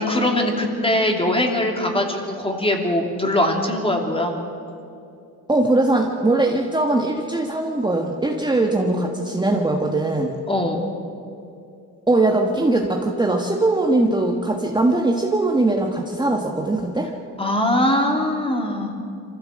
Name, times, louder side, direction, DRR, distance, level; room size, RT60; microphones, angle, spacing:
voice 1, 0.0-4.4 10.5-10.9 17.4-18.9, left 1 dB, 15° left, 2 dB, 2.9 m, -21 dB
voice 2, 5.5-10.3 12.1-17.1, right 2 dB, 10° right, 1 dB, 1.4 m, -20 dB
24.0 x 15.5 x 7.7 m, 2.6 s
cardioid pair, 105°, 38 cm